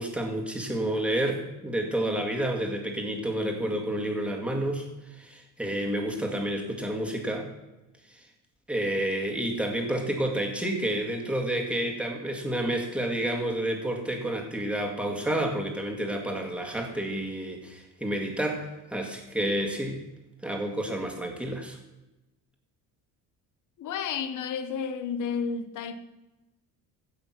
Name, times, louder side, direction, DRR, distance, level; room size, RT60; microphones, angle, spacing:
voice 1, 0.0-4.9 5.2-7.5 8.7-20.0 20.4-21.8, right 1 dB, 5° right, 2.0 m, -30 dB
voice 2, 23.8-26.0, left 6 dB, 55° left, 1.1 m, -31 dB
16.0 x 6.0 x 5.8 m
cardioid pair, 135°, 37 cm